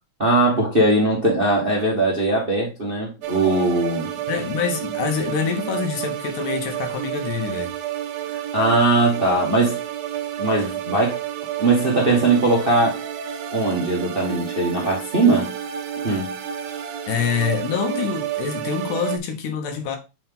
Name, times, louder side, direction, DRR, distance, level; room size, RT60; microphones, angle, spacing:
voice 1, 0.2-4.1 8.5-9.7 10.4-11.2 11.6-13.0 13.5-15.5 16.0-16.3, right 2 dB, 30° right, 1.0 m, -20 dB
sound 1, 3.2-19.2, right 11 dB, 70° right, 1.7 m, -30 dB
voice 2, 4.3-7.7 17.1-20.0, left 6 dB, 80° left, 2.6 m, -26 dB
7.2 x 4.5 x 3.7 m
omnidirectional pair, 3.7 m